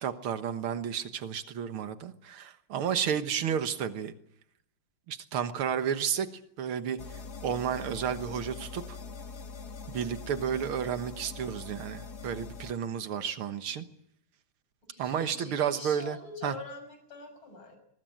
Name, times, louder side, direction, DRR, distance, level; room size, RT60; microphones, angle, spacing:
voice 1, 0.0-4.1 5.1-6.3 6.6-9.0 9.9-13.9 15.0-16.6, right 8 dB, 90° right, 9 dB, 2.2 m, -32 dB
voice 2, 3.1-3.5 14.9-17.8, left 3 dB, 80° left, 7 dB, 7.2 m, -45 dB
sound 1, 7.0-12.7, left 5 dB, 50° left, 2.3 m, -43 dB
22.5 x 21.0 x 9.2 m, 0.75 s
omnidirectional pair, 2.3 m